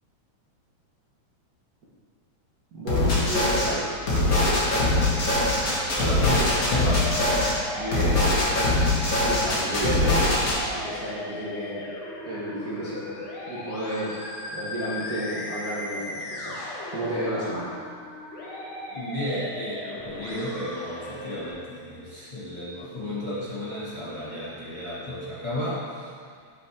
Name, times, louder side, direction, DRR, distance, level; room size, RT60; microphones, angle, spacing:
voice 1, 2.7-3.9 7.8-8.2 9.1-10.3 10.7-11.8 12.2-14.2 14.5-17.7, equal, 70° right, -8 dB, 0.8 m, -32 dB
sound 1, 2.9-3.7 4.0-7.5 7.9-10.5, left 2 dB, 45° left, 1.2 m, -22 dB
Musical instrument, 3.5-21.5, left 2 dB, 80° left, 2.7 m, -37 dB
voice 2, 5.9-7.2 10.4-10.5 14.4-14.6 18.9-26.1, equal, 20° left, -10 dB, 1.6 m, -33 dB
8.3 x 6.9 x 3.5 m, 2.1 s
omnidirectional pair, 3.4 m